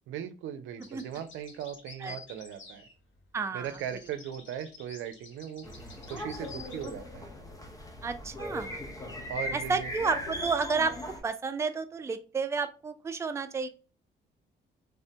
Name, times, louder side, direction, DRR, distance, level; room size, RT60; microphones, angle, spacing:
voice 1, 0.1-2.8 3.5-5.7 6.0-7.3 9.3-9.9, right 9 dB, 90° right, 10 dB, 0.5 m, -38 dB
sound 1, 0.8-3.3 3.6-6.9, left 4 dB, 75° left, 1.2 m, -50 dB
voice 2, 3.3-3.7 8.0-8.8 9.5-11.0 11.2-13.7, right 4 dB, 15° right, 8 dB, 0.3 m, -31 dB
sound 2, 5.6-11.2, left 1 dB, 15° left, 0.7 m, -39 dB
3.4 x 2.1 x 2.6 m, 0.36 s
cardioid pair, 90°, 20 cm